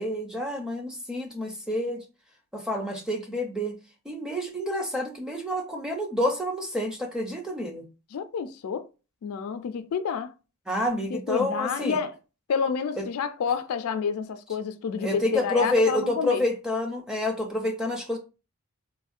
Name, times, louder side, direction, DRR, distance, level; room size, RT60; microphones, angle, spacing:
voice 1, 0.0-2.0 2.5-3.8 4.1-7.9 10.7-12.0 13.0-13.1 15.0-18.2, left 1 dB, 5° right, 0.5 m, -28 dB
voice 2, 8.1-8.8 9.2-10.3 11.1-12.1 12.5-16.4, left 6 dB, 70° left, 0.3 m, -29 dB
3.5 x 2.0 x 2.4 m
head